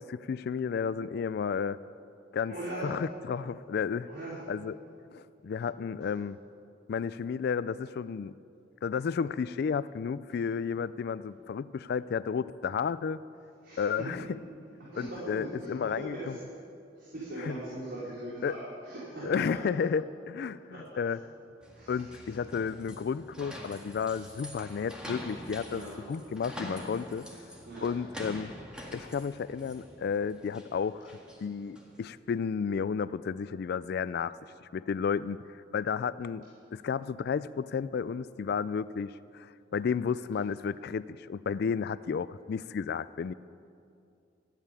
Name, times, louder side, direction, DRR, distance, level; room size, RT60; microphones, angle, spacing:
voice 1, 0.0-1.8 2.3-2.5 2.8-4.1 4.5-4.8 5.1-6.4 6.9-8.3 8.8-13.2 13.8-14.3 15.0-16.4 17.4-17.6 18.4-18.6 19.2-21.2 21.9-27.3 27.8-28.5 28.9-31.1 31.4-34.3 34.6-35.5 35.7-43.3, left 6 dB, 55° left, 16 dB, 0.3 m, -32 dB
voice 2, 2.5-2.9 4.1-4.4 6.0-6.1 13.6-14.1 14.8-16.2 17.0-19.4 19.7-19.8 20.7-21.0 21.7-22.0 25.6-26.0 27.7-27.9, right 1 dB, 60° right, -10 dB, 4.1 m, -40 dB
sound 1, 21.6-32.0, equal, 5° right, 1.9 m, -45 dB
14.0 x 8.9 x 9.7 m, 2.5 s
head